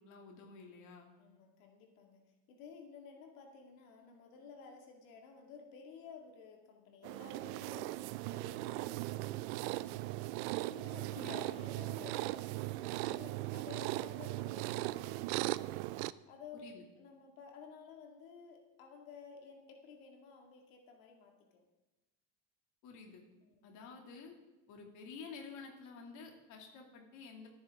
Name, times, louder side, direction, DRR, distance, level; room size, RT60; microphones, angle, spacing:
voice 1, 0.0-1.1 11.1-11.6 16.6-16.8 22.8-23.2 23.6-24.3 24.7-27.5, left 4 dB, 45° left, 1 dB, 2.6 m, -51 dB
voice 2, 1.2-2.2 2.5-8.0 8.3-10.3 10.7-15.3 16.3-16.7 17.0-21.6 23.4-23.7, left 5 dB, 80° left, 2 dB, 2.3 m, -54 dB
sound 1, 7.0-16.1, right 18 dB, 60° right, 0.5 m, -38 dB
23.5 x 9.7 x 3.7 m, 1.1 s
cardioid pair, 160°, 40 cm